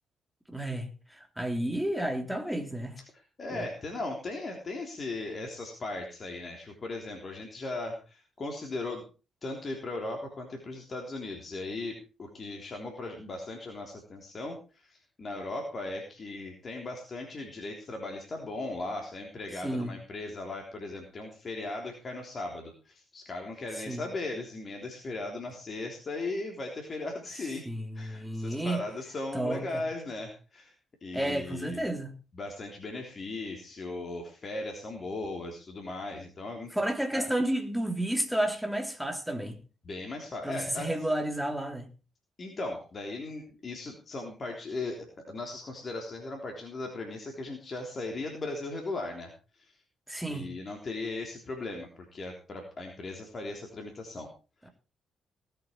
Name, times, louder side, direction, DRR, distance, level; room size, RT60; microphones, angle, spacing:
voice 1, 0.5-3.0 3.5-3.6 19.6-19.9 23.9-24.0 27.7-28.8 29.3-29.8 31.1-32.1 36.7-39.6 40.4-41.9 50.1-50.5, right 1 dB, 5° right, 3.4 m, -31 dB
voice 2, 3.0-9.0 9.4-27.6 27.9-30.7 31.0-31.9 32.3-36.7 37.1-37.3 39.8-40.9 42.4-45.0 45.3-49.7 50.3-54.3, left 2 dB, 40° left, 3.5 m, -38 dB
18.5 x 9.0 x 4.6 m
figure-of-eight pair, 40°, 0 cm